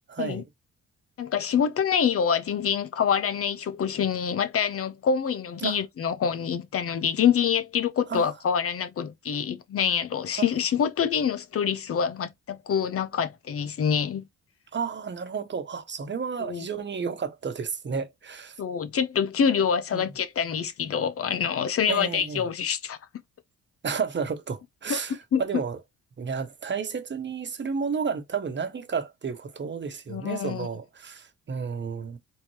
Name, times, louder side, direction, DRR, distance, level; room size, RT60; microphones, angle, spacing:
voice 1, 0.1-0.4 5.6-5.8 8.1-8.3 14.7-18.6 19.9-20.1 21.9-22.4 23.8-25.8 26.2-32.2, right 6 dB, 35° right, 1.2 m, -32 dB
voice 2, 1.2-14.2 16.4-16.7 18.6-23.0 24.9-25.0 25.3-25.4 30.1-30.7, left 7 dB, 50° left, 0.7 m, -26 dB
4.4 x 3.6 x 3.2 m
cardioid pair, 90°, 30 cm